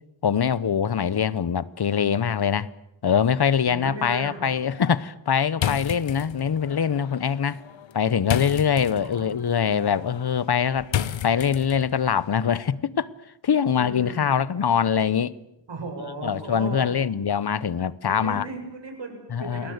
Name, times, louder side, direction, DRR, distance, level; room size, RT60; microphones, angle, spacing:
voice 1, 0.2-2.7 3.0-7.6 7.9-10.9 11.2-13.1 13.4-15.3 16.2-18.5 19.3-19.7, left 7 dB, 55° left, 1.0 m, -23 dB
voice 2, 3.6-4.5 9.0-9.3 13.7-14.4 15.7-16.9 18.0-19.7, right 3 dB, 75° right, 7.6 m, -36 dB
sound 1, 5.5-12.0, left 10 dB, 85° left, 1.0 m, -32 dB
29.0 x 19.5 x 8.1 m
wide cardioid pair, 90°, 45 cm